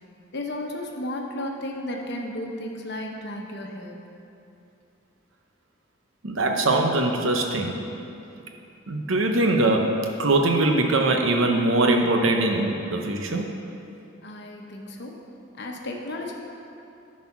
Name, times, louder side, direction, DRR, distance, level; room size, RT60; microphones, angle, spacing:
voice 1, 0.3-4.0 14.2-15.2 15.5-16.3, left 1 dB, 55° left, 1 dB, 1.0 m, -33 dB
voice 2, 6.2-7.8 8.9-13.5, right 2 dB, 70° right, 3 dB, 0.9 m, -22 dB
11.0 x 4.3 x 5.8 m, 2.7 s
head